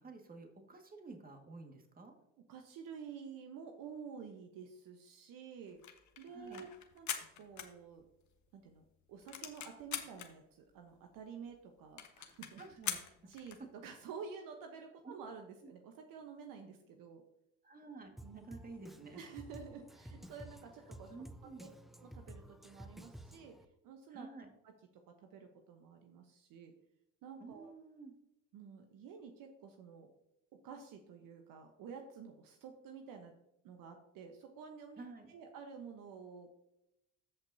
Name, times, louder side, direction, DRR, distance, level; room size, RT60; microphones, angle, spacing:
voice 1, 0.0-2.1 6.3-6.6 12.6-13.0 15.0-15.2 15.6-15.7 17.6-19.2 21.1-21.7 24.1-24.5 27.4-28.1 35.0-35.3, right 3 dB, 25° right, 4 dB, 1.9 m, -51 dB
voice 2, 2.5-5.8 6.2-6.7 6.9-7.1 7.4-8.0 8.5-12.6 13.3-17.2 18.2-18.4 19.1-21.1 21.6-21.7 22.0-23.5 23.8-24.3 24.6-24.7 25.1-26.7 27.2-27.7 28.5-30.1 30.6-33.3 33.6-35.0 35.3-36.5, right 6 dB, 60° right, 4 dB, 1.1 m, -50 dB
sound 1, 5.7-8.3 8.7-8.8 9.0-10.3 10.9-11.0 11.2-11.3 11.5-11.6 12.0-13.7, left 9 dB, 50° left, 1.3 m, -43 dB
Drum kit, 18.2-23.6, right 1 dB, ahead, 0.5 m, -53 dB
14.5 x 5.4 x 2.8 m, 0.83 s
hypercardioid pair, 70°, 37 cm